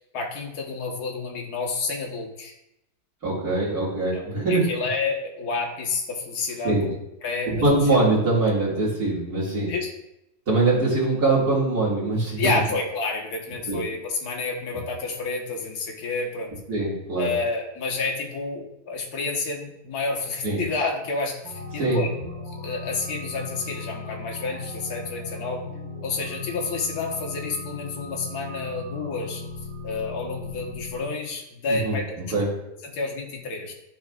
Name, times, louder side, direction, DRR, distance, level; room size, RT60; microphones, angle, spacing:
voice 1, 0.1-2.5 4.1-4.2 4.5-7.0 7.2-7.8 9.7-9.9 12.4-16.5 17.2-22.1 22.6-25.6 26.0-29.4 29.8-32.1 32.8-33.7, left 4 dB, 60° left, 0 dB, 1.7 m, -29 dB
voice 2, 3.2-4.7 6.6-6.9 7.5-9.7 10.5-12.5 13.7-13.8 16.7-17.3 20.4-20.6 21.8-22.0 31.7-32.0 32.3-32.5, right 2 dB, 55° right, -7 dB, 2.6 m, -22 dB
sound 1, 21.4-31.0, left 2 dB, 80° right, 2.8 m, -37 dB
12.5 x 4.6 x 2.4 m, 0.84 s
omnidirectional pair, 2.0 m